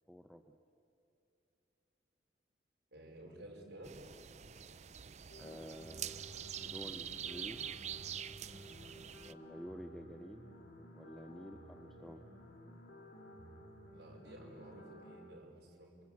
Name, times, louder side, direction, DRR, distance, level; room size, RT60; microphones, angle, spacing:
voice 1, 0.1-0.6 5.4-7.7 9.2-10.5 10.9-12.3, equal, ahead, 6 dB, 0.8 m, -50 dB
voice 2, 2.9-3.9 13.9-16.0, right 1 dB, 60° right, -3 dB, 5.4 m, -53 dB
sound 1, 3.8-9.3, right 9 dB, 40° right, 0.5 m, -45 dB
sound 2, 5.3-15.2, equal, 90° left, 3.8 m, -55 dB
26.5 x 25.5 x 8.6 m, 2.8 s
head